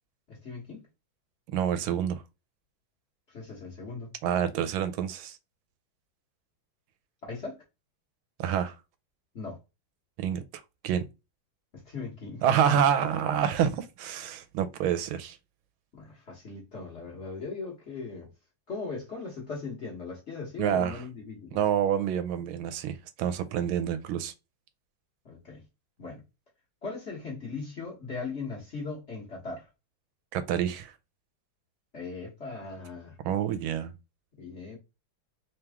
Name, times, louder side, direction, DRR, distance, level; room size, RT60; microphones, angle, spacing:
voice 1, 0.3-0.9 3.3-4.1 7.2-7.6 9.3-9.6 11.7-12.4 15.9-18.3 18.7-21.6 25.2-25.6 26.0-26.2 26.8-29.6 31.9-33.2 34.4-34.8, left 4 dB, 40° left, 1.3 m, -39 dB
voice 2, 1.5-2.2 4.2-5.4 8.4-8.8 10.2-10.4 10.8-11.0 12.4-15.4 20.6-21.0 21.5-24.3 30.3-30.9 33.2-33.9, right 9 dB, 85° right, 1.4 m, -27 dB
3.6 x 2.9 x 3.4 m
omnidirectional pair, 2.2 m